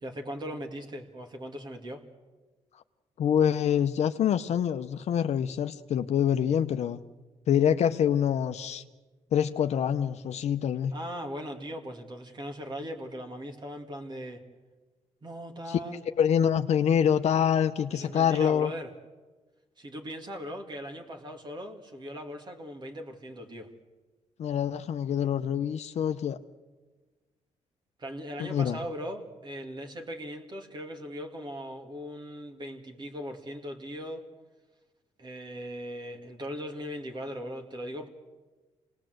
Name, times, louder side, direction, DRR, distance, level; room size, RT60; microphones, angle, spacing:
voice 1, 0.0-2.0 10.9-14.4 15.2-16.0 17.9-18.9 19.8-23.7 28.0-34.3 35.2-38.1, equal, 40° right, 3 dB, 2.5 m, -39 dB
voice 2, 3.2-7.0 7.5-8.8 9.3-10.9 15.7-15.8 16.2-18.7 24.4-26.4 28.4-28.8, left 9 dB, 65° left, 8 dB, 0.8 m, -25 dB
26.5 x 19.5 x 7.9 m, 1.3 s
cardioid pair, 95°, 12 cm